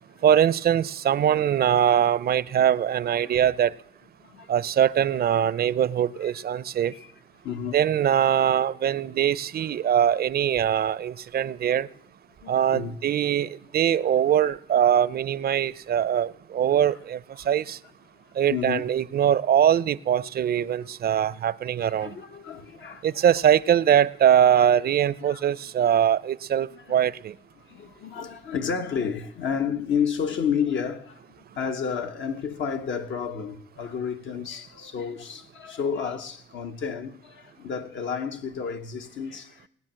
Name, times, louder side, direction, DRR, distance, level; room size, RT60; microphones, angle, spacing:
voice 1, 0.2-3.7 4.5-6.9 7.7-11.9 12.5-17.2 17.5-17.8 18.4-22.2 23.0-27.3, right 9 dB, 50° right, 0.5 m, -22 dB
voice 2, 4.2-4.5 6.2-6.3 6.9-7.1 7.4-7.8 11.3-11.5 12.4-13.0 13.4-13.5 17.4-17.5 18.5-19.0 21.8-23.2 24.5-24.6 25.2-25.4 25.8-25.9 26.7-26.9 27.6-39.7, left 7 dB, 70° left, 1.4 m, -31 dB
19.0 x 9.3 x 7.6 m
cardioid pair, 90°, 20 cm